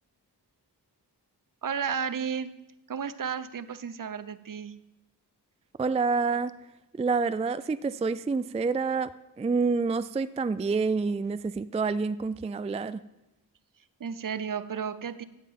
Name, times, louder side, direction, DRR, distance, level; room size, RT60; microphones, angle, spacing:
voice 1, 1.6-2.6 2.9-4.8 14.0-15.2, right 7 dB, 50° right, 15 dB, 0.7 m, -33 dB
voice 2, 5.8-6.5 7.0-9.1 9.4-13.0, right 4 dB, 15° right, 14 dB, 0.3 m, -27 dB
14.0 x 7.4 x 5.3 m, 0.95 s
cardioid pair, 60°, 41 cm